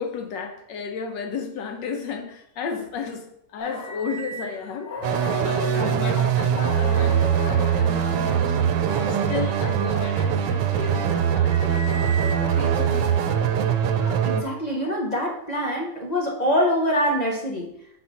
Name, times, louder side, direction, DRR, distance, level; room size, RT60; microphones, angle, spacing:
voice 1, 0.0-13.4, left 5 dB, 85° left, 5 dB, 1.5 m, -34 dB
sound 1, 3.6-8.1 8.8-9.6 10.3-12.7 13.3-15.6, equal, 70° left, 1.7 m, -36 dB
sound 2, 5.0-14.4, right 8 dB, 90° right, 1.3 m, -22 dB
voice 2, 5.7-6.2 14.2-17.7, equal, 35° left, -1 dB, 0.7 m, -25 dB
4.3 x 4.1 x 5.7 m, 0.76 s
omnidirectional pair, 1.9 m